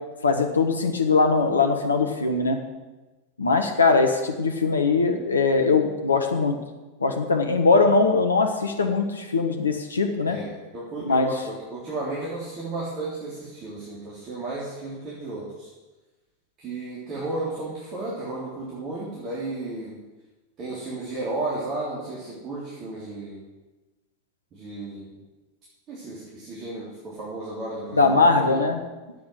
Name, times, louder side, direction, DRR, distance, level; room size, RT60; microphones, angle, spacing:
voice 1, 0.2-2.6 3.4-6.6 7.0-10.4 11.0-11.3 28.0-28.8, left 4 dB, 75° left, 5 dB, 1.2 m, -21 dB
voice 2, 10.2-15.7 16.6-20.0 20.6-23.4 24.5-25.2 25.9-28.6, right 2 dB, 30° right, -6 dB, 3.4 m, -33 dB
10.5 x 8.4 x 7.8 m, 1.2 s
figure-of-eight pair, 90°, 0 cm